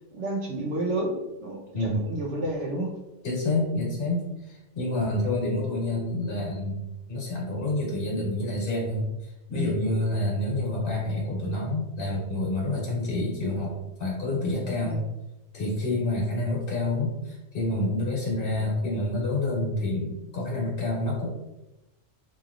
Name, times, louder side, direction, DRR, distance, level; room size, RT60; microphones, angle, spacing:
voice 1, 0.1-2.9 9.5-9.8 14.8-15.0, right 1 dB, 70° right, 0 dB, 0.9 m, -30 dB
voice 2, 3.2-6.8 7.1-9.0 9.5-13.7 14.0-15.0 15.5-21.3, left 2 dB, 50° left, -5 dB, 1.4 m, -28 dB
3.0 x 2.7 x 2.4 m, 0.96 s
omnidirectional pair, 1.3 m